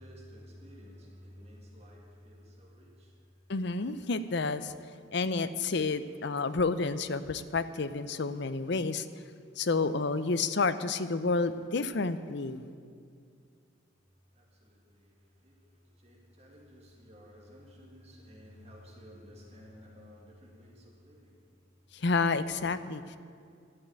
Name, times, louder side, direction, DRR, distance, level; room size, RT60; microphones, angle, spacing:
voice 1, 0.0-3.3 14.3-21.5, equal, 35° right, 2.3 m, -53 dB
voice 2, 3.5-4.7 5.1-9.1 9.6-12.6 21.9-23.2, left 3 dB, 60° left, 0.6 m, -30 dB
12.5 x 9.1 x 8.9 m
head